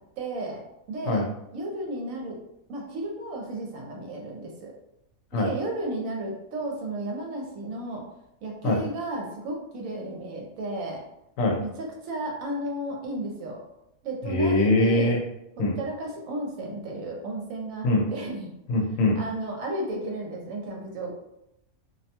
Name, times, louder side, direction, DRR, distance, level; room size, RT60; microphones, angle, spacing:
voice 1, 0.2-0.6 0.9-1.2 1.5-2.3 2.7-4.7 5.3-8.0 8.4-11.0 11.6-13.6 14.0-15.2 15.8-18.5 19.1-21.1, right 1 dB, 70° right, 0 dB, 1.0 m, -33 dB
voice 2, 14.2-15.2 15.6-15.8 17.8-18.0 18.7-19.2, left 2 dB, 70° left, 0 dB, 0.9 m, -22 dB
2.6 x 2.2 x 2.8 m, 0.83 s
omnidirectional pair, 1.5 m